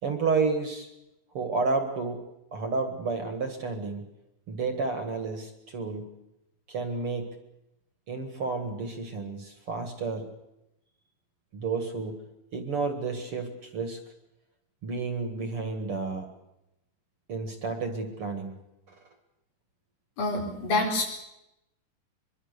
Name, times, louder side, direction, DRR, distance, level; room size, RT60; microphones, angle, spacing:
voice 1, 0.0-0.9 1.3-2.2 2.5-4.1 4.5-6.1 6.7-7.3 8.1-10.3 11.5-12.2 12.5-14.0 14.8-16.3 17.3-18.5 18.9-19.0, right 4 dB, 45° right, 6 dB, 2.3 m, -31 dB
voice 2, 20.2-21.1, left 2 dB, 80° left, 1 dB, 6.2 m, -27 dB
24.0 x 22.5 x 6.8 m, 0.89 s
omnidirectional pair, 4.1 m